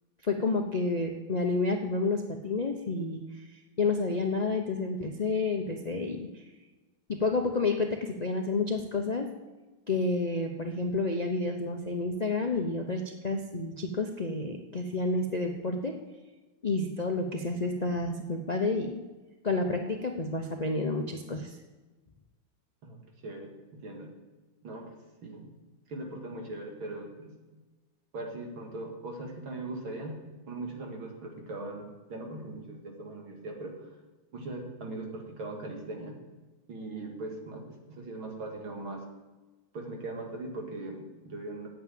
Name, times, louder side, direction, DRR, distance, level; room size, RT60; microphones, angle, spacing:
voice 1, 0.2-6.5 7.1-9.3 9.9-15.9 16.6-19.0 19.4-21.6, left 3 dB, 85° left, 3 dB, 0.3 m, -30 dB
voice 2, 22.8-24.1 24.6-24.9 25.2-25.5 25.9-27.3 28.1-30.2 30.5-33.8 34.3-36.2 36.7-39.0 39.7-41.7, right 2 dB, 90° right, 1 dB, 2.9 m, -40 dB
9.2 x 8.2 x 9.0 m, 1.2 s
omnidirectional pair, 2.2 m